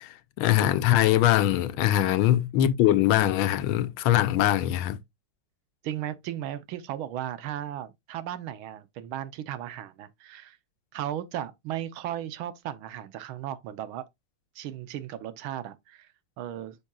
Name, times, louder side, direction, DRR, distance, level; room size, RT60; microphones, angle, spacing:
voice 1, 0.0-5.0, left 13 dB, 85° left, 1.5 m, -22 dB
voice 2, 5.8-10.6 10.9-14.0 14.6-16.1 16.4-16.8, right 11 dB, 80° right, 1.6 m, -36 dB
8.5 x 5.4 x 2.3 m
omnidirectional pair, 2.3 m